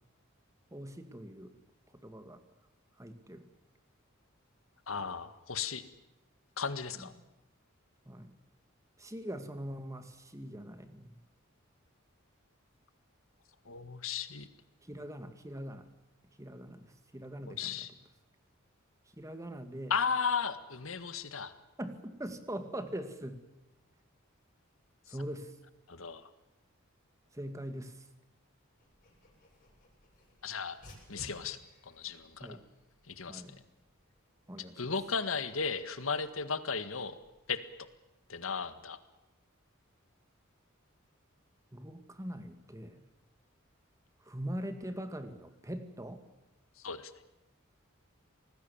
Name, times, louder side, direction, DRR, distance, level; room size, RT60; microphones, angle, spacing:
voice 1, 0.7-1.5 1.9-2.4 3.0-3.5 7.0-7.1 8.1-8.4 9.0-11.2 14.8-15.9 16.4-17.9 19.2-19.9 21.8-23.4 25.1-25.6 27.3-28.1 32.4-32.6 33.3-33.6 34.5-34.9 41.7-43.0 44.2-46.2, right 1 dB, 15° right, 8 dB, 2.2 m, -42 dB
voice 2, 4.9-5.8 6.6-7.1 13.6-14.5 17.5-17.9 19.9-21.5 25.9-26.3 30.4-30.8 31.1-31.6 31.8-32.6 33.1-33.4 34.8-37.2 37.5-37.6 38.3-39.0 46.8-47.1, left 5 dB, 80° left, 11 dB, 1.8 m, -35 dB
Dog, 28.8-37.9, equal, 45° left, 7.8 m, -59 dB
25.5 x 19.5 x 7.3 m, 1.0 s
head